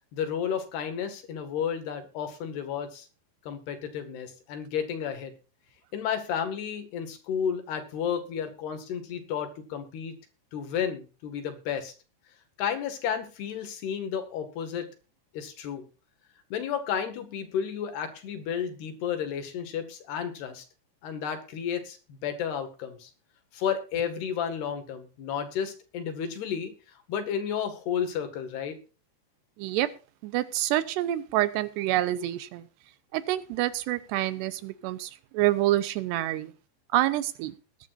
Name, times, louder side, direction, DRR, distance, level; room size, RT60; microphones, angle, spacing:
voice 1, 0.1-3.1 3.5-5.3 5.9-10.1 10.5-11.9 12.6-14.9 15.3-15.9 16.5-20.7 21.0-23.1 23.5-28.8, left 8 dB, 70° left, 7 dB, 3.9 m, -32 dB
voice 2, 29.6-30.0 30.2-32.6 33.1-36.5 36.9-37.5, right 14 dB, 80° right, 14 dB, 2.8 m, -27 dB
20.5 x 10.5 x 2.6 m, 0.34 s
omnidirectional pair, 5.1 m